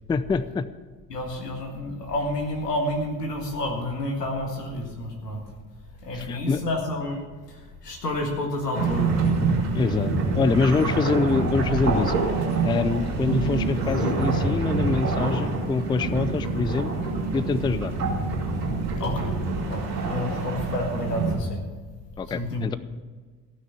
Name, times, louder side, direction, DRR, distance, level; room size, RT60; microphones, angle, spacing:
voice 1, 0.1-0.7 6.1-6.6 9.7-12.1 12.6-16.9 17.3-17.9 22.2-22.8, left 4 dB, 10° left, 15 dB, 0.4 m, -25 dB
voice 2, 1.1-5.4 6.0-9.3 19.0-19.4 19.6-21.6 22.3-22.8, left 1 dB, 90° left, 2 dB, 1.9 m, -30 dB
sound 1, 8.7-21.3, right 3 dB, 85° right, 2.9 m, -26 dB
15.5 x 6.3 x 7.1 m, 1.4 s
figure-of-eight pair, 55°, 47 cm